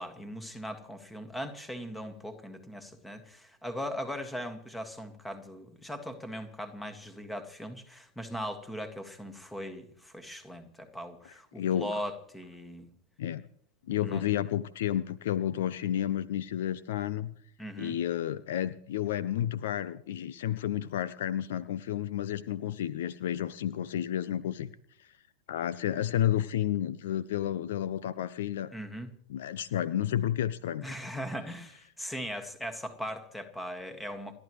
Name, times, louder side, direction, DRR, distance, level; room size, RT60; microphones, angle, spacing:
voice 1, 0.0-12.9 14.0-14.3 17.6-18.0 28.7-29.1 30.8-34.3, equal, 5° left, 8 dB, 1.9 m, -39 dB
voice 2, 11.6-12.0 13.2-13.4 13.9-17.3 17.8-24.7 25.0-25.1 25.5-28.7 29.3-30.9, left 11 dB, 55° left, 18 dB, 0.5 m, -31 dB
29.5 x 10.5 x 3.2 m, 0.67 s
figure-of-eight pair, 90°, 0 cm